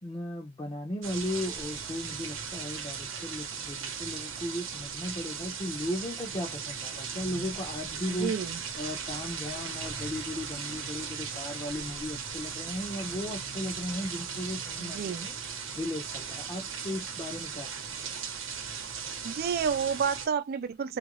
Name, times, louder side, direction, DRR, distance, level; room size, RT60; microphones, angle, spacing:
voice 1, 0.0-8.3 8.7-15.4 15.7-17.7 18.0-18.1, left 1 dB, 25° left, 0.6 m, -36 dB
sound 1, 1.0-20.3, right 6 dB, 80° right, 0.8 m, -38 dB
voice 2, 8.2-8.6 14.8-15.3 19.2-21.0, right 6 dB, 50° right, 0.3 m, -30 dB
2.8 x 2.5 x 3.0 m
head